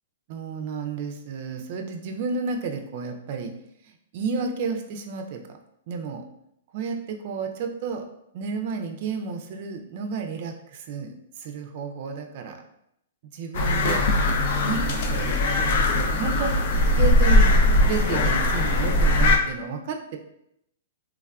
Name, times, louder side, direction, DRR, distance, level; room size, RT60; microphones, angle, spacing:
voice 1, 0.3-3.5 3.8-5.6 5.9-6.2 6.7-8.1 8.3-12.6 13.3-14.1 14.6-16.7 17.0-20.2, right 5 dB, 50° right, 5 dB, 0.4 m, -31 dB
sound 1, 13.5-19.4, left 1 dB, 55° left, 0.4 m, -20 dB
3.3 x 2.2 x 2.3 m, 0.77 s
hypercardioid pair, 125°, 0 cm